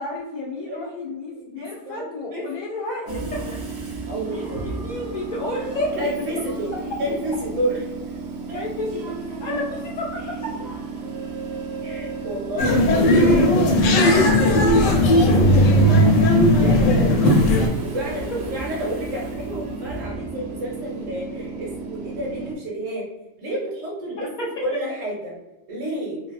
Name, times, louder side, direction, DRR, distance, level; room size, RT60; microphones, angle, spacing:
voice 1, 0.0-3.4 4.3-5.9 6.9-7.0 8.5-10.5 24.2-24.5, left 2 dB, 60° left, -4 dB, 0.4 m, -31 dB
voice 2, 1.4-2.4 3.0-3.5 4.1-4.9 5.9-6.7 7.0-7.8 8.5-8.6 11.8-15.5 16.0-16.1 16.6-17.3 17.8-23.1 23.4-24.3 24.6-25.3 25.7-26.2, right 1 dB, 90° right, -4 dB, 1.2 m, -30 dB
Train / Subway metro underground, 3.1-22.5, right 3 dB, 65° right, 0.8 m, -33 dB
sound 1, 12.6-17.7, left 1 dB, 85° left, 0.9 m, -16 dB
3.2 x 2.3 x 2.3 m, 1.0 s
omnidirectional pair, 1.3 m